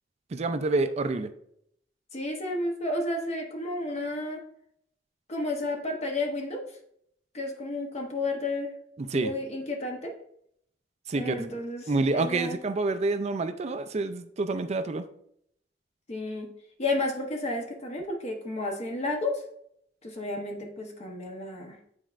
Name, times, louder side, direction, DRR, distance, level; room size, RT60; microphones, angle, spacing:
voice 1, 0.3-1.3 9.1-9.3 11.1-11.5 11.9-15.0, right 3 dB, 40° right, 10 dB, 0.4 m, -28 dB
voice 2, 2.1-4.4 5.3-6.6 7.3-8.7 9.1-10.1 11.1-12.6 16.1-16.5 16.8-19.4 20.0-21.8, left 2 dB, 40° left, 1 dB, 0.9 m, -32 dB
9.1 x 4.3 x 2.5 m, 0.71 s
head